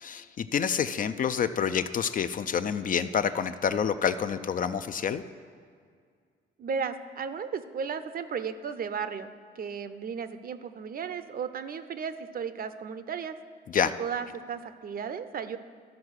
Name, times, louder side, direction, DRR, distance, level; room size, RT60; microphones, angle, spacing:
voice 1, 0.0-5.2 13.7-13.9, left 7 dB, 45° left, 11 dB, 0.4 m, -28 dB
voice 2, 6.6-9.3 9.6-13.4 14.0-15.6, right 6 dB, 45° right, 11 dB, 0.6 m, -34 dB
12.5 x 4.8 x 6.4 m, 2.1 s
cardioid pair, 90°, 20 cm